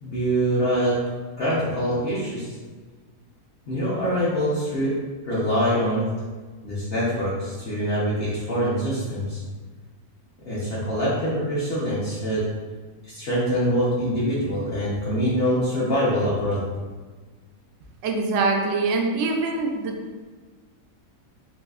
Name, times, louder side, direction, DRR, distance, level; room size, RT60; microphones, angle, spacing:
voice 1, 0.0-0.9 1.4-2.5 3.7-4.9 5.2-6.0 6.6-9.4 10.4-12.4 13.0-16.6, equal, 50° left, -9 dB, 0.8 m, -24 dB
voice 2, 18.0-19.9, right 3 dB, 70° right, 2 dB, 0.7 m, -24 dB
4.0 x 2.6 x 2.3 m, 1.4 s
omnidirectional pair, 1.7 m